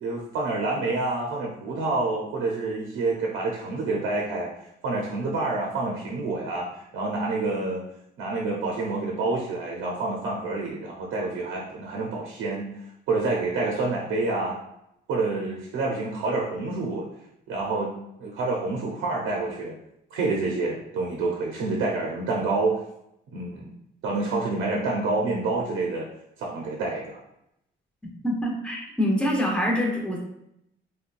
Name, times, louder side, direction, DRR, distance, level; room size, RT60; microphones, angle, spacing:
voice 1, 0.0-4.5 4.8-7.8 8.2-12.7 13.1-14.6 15.1-17.1 17.5-17.9 18.2-19.8 20.1-22.8 23.3-23.7 24.0-26.1 26.4-27.2, right 3 dB, 80° right, -2 dB, 0.6 m, -28 dB
voice 2, 28.2-30.2, equal, 5° left, -2 dB, 0.8 m, -25 dB
3.6 x 2.2 x 2.4 m, 0.79 s
cardioid pair, 90°, 20 cm